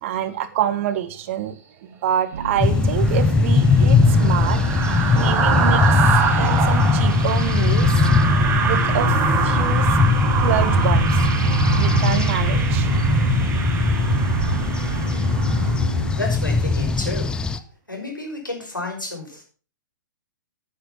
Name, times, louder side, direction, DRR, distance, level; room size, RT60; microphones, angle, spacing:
voice 1, 0.0-1.6 1.8-4.6 5.1-8.0 8.6-10.0 10.4-11.3 11.7-12.9 15.9-16.0, right 10 dB, 40° right, 11 dB, 1.5 m, -27 dB
Boat Water vehicle, 2.3-16.1, right 4 dB, 55° right, 2.7 m, -31 dB
sound 1, 2.6-17.6, left 4 dB, 10° left, 0.6 m, -20 dB
sound 2, 2.9-16.3 16.6-16.8, right 4 dB, 20° right, 2.0 m, -23 dB
voice 2, 16.1-17.3 17.9-19.4, left 2 dB, 85° left, 1 dB, 5.8 m, -31 dB
10.0 x 9.0 x 5.9 m, 0.37 s
figure-of-eight pair, 115°, 10 cm